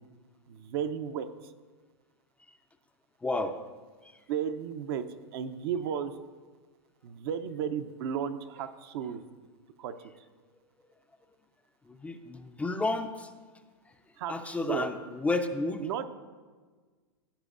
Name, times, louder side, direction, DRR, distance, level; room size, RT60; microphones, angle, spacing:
voice 1, 0.5-1.5 4.3-5.0 5.3-6.2 7.0-9.2 9.8-10.3 14.2-14.9 15.8-16.1, right 8 dB, 60° right, 9 dB, 0.6 m, -34 dB
voice 2, 3.2-3.6 11.9-13.3 14.3-15.9, left 2 dB, 10° left, 7 dB, 0.4 m, -31 dB
16.0 x 7.6 x 2.5 m, 1.5 s
hypercardioid pair, 115°, 15 cm